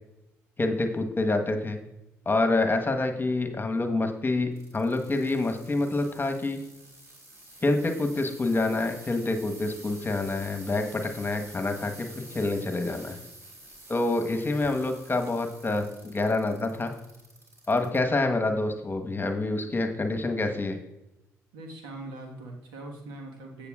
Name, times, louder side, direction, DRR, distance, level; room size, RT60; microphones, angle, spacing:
voice 1, 0.6-1.8 2.2-6.6 7.6-13.2 13.9-16.9 17.7-20.8, left 2 dB, 25° left, 5 dB, 1.3 m, -27 dB
sound 1, 4.5-18.0 18.5-19.0 19.6-19.7, right 1 dB, 35° right, 3.1 m, -49 dB
voice 2, 21.5-23.7, right 2 dB, 75° right, 1 dB, 1.5 m, -41 dB
15.5 x 6.9 x 2.4 m, 0.93 s
hypercardioid pair, 45°, 8 cm